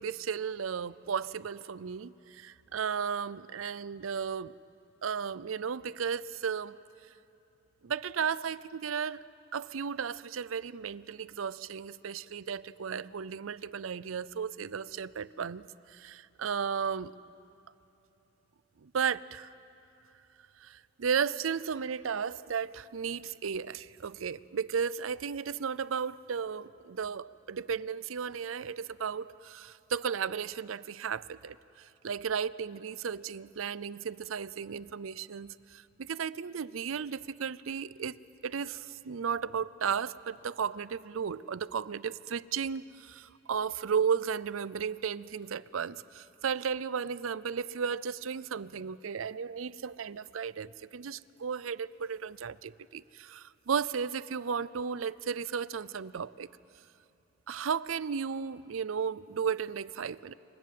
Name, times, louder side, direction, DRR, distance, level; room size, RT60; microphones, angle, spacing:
voice 1, 0.0-4.5 5.0-6.7 7.8-9.2 9.5-17.1 18.8-19.5 20.6-38.2 38.4-56.5 57.5-60.3, right 6 dB, 85° right, 19 dB, 0.5 m, -34 dB
27.0 x 23.5 x 7.7 m, 2.9 s
head